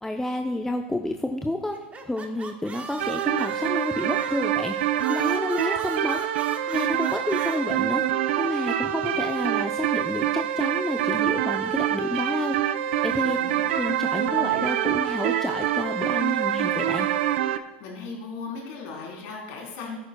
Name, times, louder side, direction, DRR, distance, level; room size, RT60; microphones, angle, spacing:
voice 1, 0.0-1.8 2.1-4.7 5.1-6.3 6.7-8.0 8.4-12.6 13.0-13.4 13.7-17.1, left 1 dB, 5° left, 4 dB, 0.6 m, -29 dB
sound 1, 1.7-4.5 5.0-7.6, right 4 dB, 20° right, 1.2 m, -40 dB
sound 2, 3.0-17.6, right 11 dB, 70° right, 0.5 m, -26 dB
voice 2, 13.1-13.7 17.8-20.0, left 4 dB, 55° left, -1 dB, 3.4 m, -37 dB
15.0 x 9.0 x 2.2 m, 1.2 s
hypercardioid pair, 100°, 6 cm